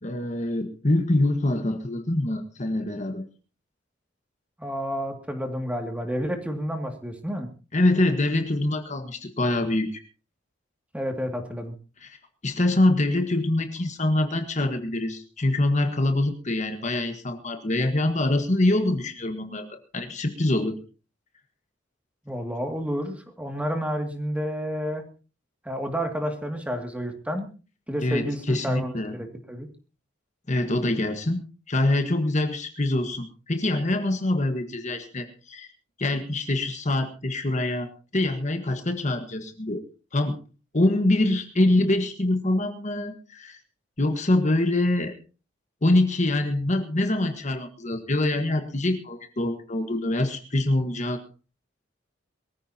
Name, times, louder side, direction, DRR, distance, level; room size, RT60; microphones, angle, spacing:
voice 1, 0.0-3.2 7.7-10.0 12.0-12.2 12.4-20.8 28.0-29.1 30.5-35.7 36.0-39.8 40.1-40.4 40.7-43.6 44.0-45.1 45.8-51.2, left 1 dB, 40° left, 6 dB, 1.5 m, -25 dB
voice 2, 4.6-7.5 10.9-11.7 22.2-25.0 25.6-27.5 27.9-29.7, equal, 5° right, 5 dB, 2.3 m, -30 dB
23.0 x 15.0 x 2.9 m, 0.34 s
head